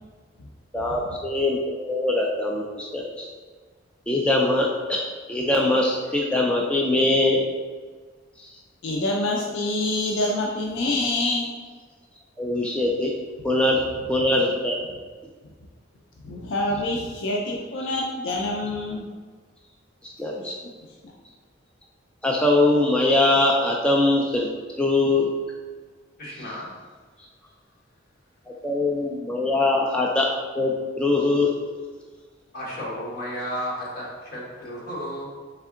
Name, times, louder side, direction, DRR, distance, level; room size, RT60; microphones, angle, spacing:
voice 1, 0.7-3.3 4.1-7.4 8.4-8.5 12.4-13.1 13.4-14.8 20.0-20.6 22.2-24.5 24.8-25.3 28.6-30.3 30.5-31.5, left 2 dB, 5° left, -2 dB, 0.3 m, -22 dB
voice 2, 8.8-11.5 16.2-19.1 20.4-20.5 21.0-21.1, left 2 dB, 70° left, -2 dB, 0.5 m, -26 dB
voice 3, 26.2-26.7 32.5-35.2, equal, 50° left, -5 dB, 1.3 m, -33 dB
3.6 x 3.3 x 3.6 m, 1.5 s
head